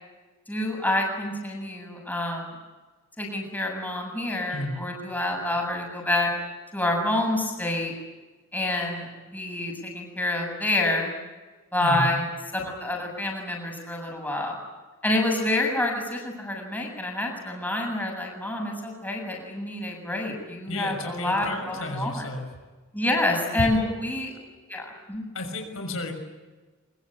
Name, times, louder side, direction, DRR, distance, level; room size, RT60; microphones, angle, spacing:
voice 1, 0.5-2.5 3.2-6.3 6.7-7.9 8.5-11.1 11.7-12.2 12.5-14.6 15.0-22.3 22.9-24.3 24.7-25.2, left 1 dB, 10° left, 0 dB, 7.6 m, -28 dB
voice 2, 4.5-4.9 11.8-12.2 20.7-22.5 23.6-23.9 25.3-26.1, left 1 dB, 75° left, 4 dB, 6.5 m, -31 dB
24.5 x 24.5 x 8.8 m, 1.3 s
head